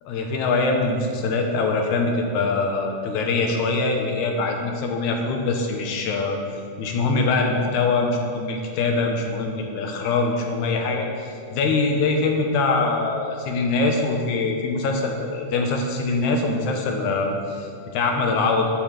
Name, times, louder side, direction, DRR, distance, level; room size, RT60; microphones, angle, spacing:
voice 1, 0.0-6.4 6.8-18.7, left 3 dB, 85° left, 2 dB, 2.4 m, -23 dB
6.5 x 6.2 x 7.3 m, 2.4 s
omnidirectional pair, 3.3 m